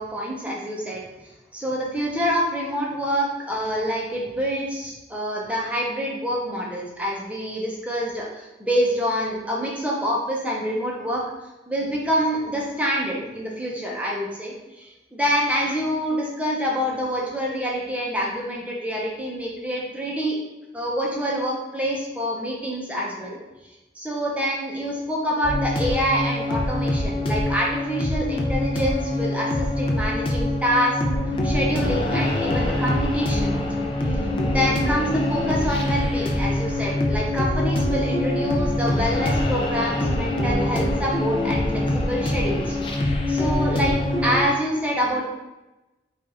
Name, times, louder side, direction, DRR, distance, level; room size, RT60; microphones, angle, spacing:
voice 1, 0.0-11.2 11.7-20.4 20.7-31.0 31.4-33.7 34.0-34.2 34.4-42.7 43.0-43.9 44.2-45.2, equal, 5° right, -3 dB, 0.7 m, -26 dB
sound 1, 25.4-44.5, left 1 dB, 30° left, 0.4 m, -24 dB
4.4 x 2.5 x 4.3 m, 1.1 s
head